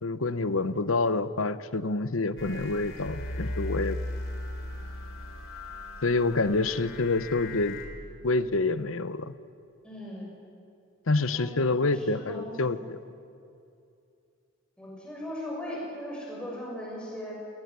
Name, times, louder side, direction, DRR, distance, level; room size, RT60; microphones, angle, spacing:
voice 1, 0.0-4.0 6.0-7.8 8.2-9.3 11.1-13.0, left 3 dB, 90° left, 14 dB, 0.9 m, -27 dB
sound 1, 2.4-7.9, left 1 dB, 70° left, 3.7 m, -37 dB
voice 2, 3.5-3.8 9.8-10.4 11.3-12.8 14.8-17.3, left 1 dB, 5° left, -4 dB, 6.9 m, -39 dB
20.0 x 19.5 x 9.6 m, 2.5 s
head